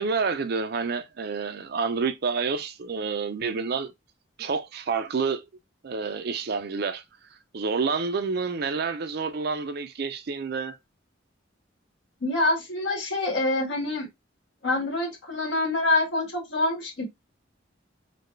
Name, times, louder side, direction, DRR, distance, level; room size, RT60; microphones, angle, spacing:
voice 1, 0.0-3.9 4.4-5.5 5.8-7.0 7.5-10.8, right 5 dB, 55° right, 0.5 m, -28 dB
voice 2, 12.2-14.1 14.6-17.0, left 2 dB, 70° left, 1.6 m, -26 dB
4.1 x 2.2 x 3.1 m
head